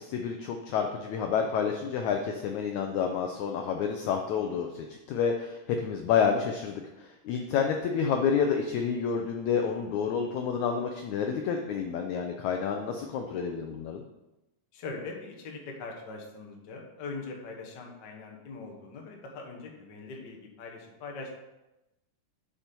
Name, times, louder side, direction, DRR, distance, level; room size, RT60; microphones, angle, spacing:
voice 1, 0.0-14.0, left 6 dB, 75° left, 4 dB, 1.7 m, -29 dB
voice 2, 14.7-21.3, left 3 dB, 50° left, 1 dB, 1.3 m, -41 dB
8.7 x 6.0 x 5.3 m, 0.98 s
omnidirectional pair, 4.0 m